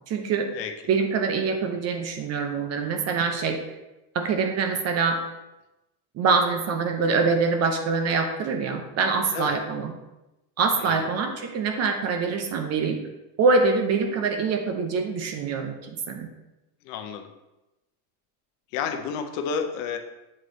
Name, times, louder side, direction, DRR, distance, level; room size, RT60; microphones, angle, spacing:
voice 1, 0.1-0.5 0.9-3.6 4.1-5.2 6.1-9.9 10.6-13.0 13.4-16.3, right 4 dB, 35° right, 5 dB, 0.6 m, -24 dB
voice 2, 16.9-17.3 18.7-20.0, left 6 dB, 65° left, 5 dB, 0.8 m, -30 dB
7.5 x 3.3 x 3.9 m, 0.98 s
cardioid pair, 150°, 48 cm